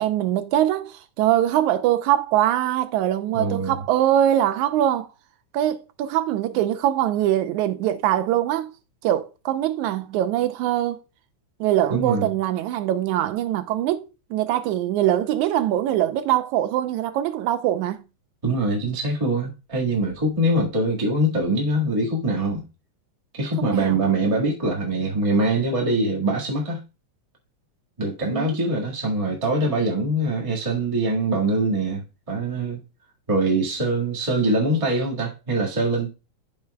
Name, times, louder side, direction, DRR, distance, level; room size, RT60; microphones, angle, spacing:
voice 1, 0.0-5.1 5.5-8.7 9.0-11.0 11.6-18.0 23.7-24.0 28.3-28.6, right 12 dB, 90° right, 2.1 m, -22 dB
voice 2, 3.3-3.7 11.9-12.3 18.4-22.6 23.4-26.8 28.0-32.8 33.3-36.1, right 2 dB, 15° right, 1.1 m, -23 dB
13.0 x 4.5 x 2.2 m
omnidirectional pair, 3.3 m